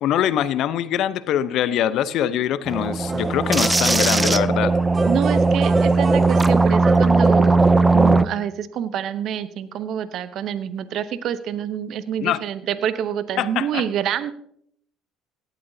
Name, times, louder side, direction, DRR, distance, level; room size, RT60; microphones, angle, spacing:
voice 1, 0.0-4.7 12.2-12.4 13.4-13.8, left 11 dB, 60° left, 15 dB, 0.7 m, -23 dB
sound 1, 2.7-8.2, right 3 dB, 15° right, 0.6 m, -18 dB
sound 2, 3.1-4.6 4.9-7.2, right 3 dB, 35° right, 1.3 m, -33 dB
voice 2, 5.1-7.6 7.9-14.3, right 9 dB, 60° right, 13 dB, 0.8 m, -27 dB
17.5 x 12.0 x 2.8 m, 0.67 s
hypercardioid pair, 70°, 0 cm